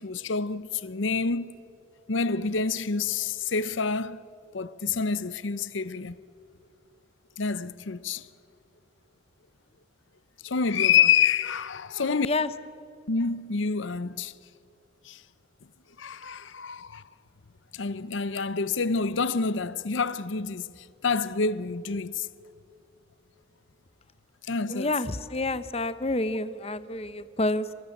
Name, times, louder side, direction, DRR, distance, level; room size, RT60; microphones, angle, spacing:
voice 1, 0.0-1.6 2.1-4.2 4.5-6.2 7.4-8.3 10.4-12.3 13.1-14.3 15.0-15.2 16.0-17.0 17.7-22.3 24.4-24.9, left 5 dB, 75° left, 0.7 m, -27 dB
voice 2, 24.7-27.7, left 2 dB, 30° left, 0.8 m, -28 dB
29.0 x 26.5 x 7.2 m
head